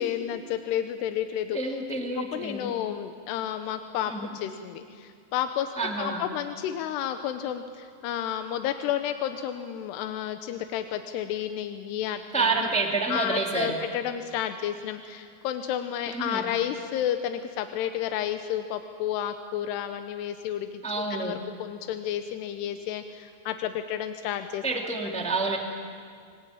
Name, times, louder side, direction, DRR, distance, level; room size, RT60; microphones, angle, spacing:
voice 1, 0.0-1.8 2.1-5.7 6.0-12.7 13.1-20.8 21.1-24.6, left 10 dB, 90° left, 8 dB, 3.0 m, -31 dB
voice 2, 1.5-2.7 4.1-4.3 5.8-6.2 12.3-13.8 16.1-16.4 20.8-21.3 24.6-25.6, right 3 dB, 5° left, 1 dB, 1.2 m, -28 dB
26.5 x 20.5 x 9.1 m, 2.2 s
omnidirectional pair, 4.6 m